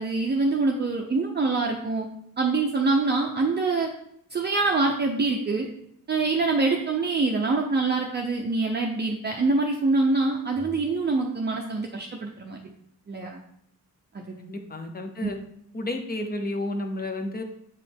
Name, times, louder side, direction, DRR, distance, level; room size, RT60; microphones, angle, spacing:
voice 1, 0.0-2.1 2.4-3.9 4.3-5.7 6.1-12.6 13.1-13.4 14.1-14.2 15.2-15.3, right 3 dB, 30° right, 0 dB, 0.6 m, -25 dB
voice 2, 14.4-15.4 15.7-17.4, left 1 dB, 25° left, 5 dB, 0.9 m, -31 dB
8.4 x 4.9 x 3.5 m, 0.71 s
wide cardioid pair, 170°, 35 cm